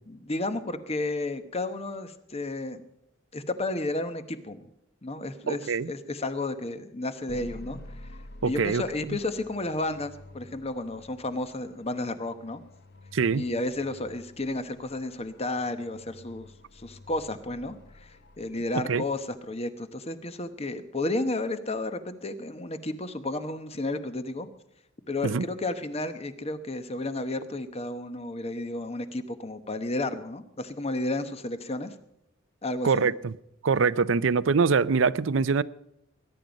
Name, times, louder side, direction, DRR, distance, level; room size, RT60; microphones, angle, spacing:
voice 1, 0.1-2.8 3.3-4.7 5.0-8.2 8.4-12.6 13.3-16.5 16.7-24.5 25.1-31.9 32.6-33.1, left 2 dB, 30° left, 11 dB, 1.0 m, -32 dB
voice 2, 5.5-5.9 8.4-8.8 9.1-9.2 13.1-13.4 18.9-19.0 25.2-25.5 32.8-33.3 33.6-35.6, right 5 dB, 70° right, 18 dB, 0.5 m, -24 dB
sound 1, 7.3-19.4, left 1 dB, 55° left, 1.0 m, -49 dB
21.0 x 10.5 x 5.2 m, 0.82 s
head